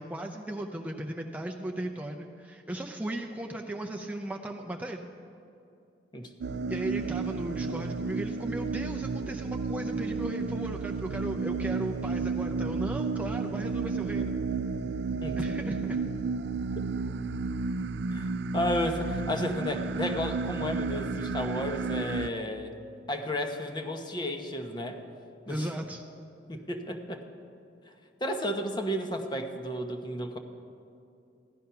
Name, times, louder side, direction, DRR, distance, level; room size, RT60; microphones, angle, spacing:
voice 1, 0.0-5.0 6.7-14.3 15.4-16.0 25.5-26.0, right 1 dB, 10° right, 1 dB, 0.6 m, -36 dB
sound 1, 6.4-22.3, right 4 dB, 65° right, 0.4 m, -32 dB
voice 2, 18.1-22.7 23.1-25.0 25.5-25.7 26.5-27.2 28.2-30.4, left 1 dB, 25° left, 5 dB, 1.0 m, -32 dB
15.5 x 11.5 x 5.7 m, 2.6 s
head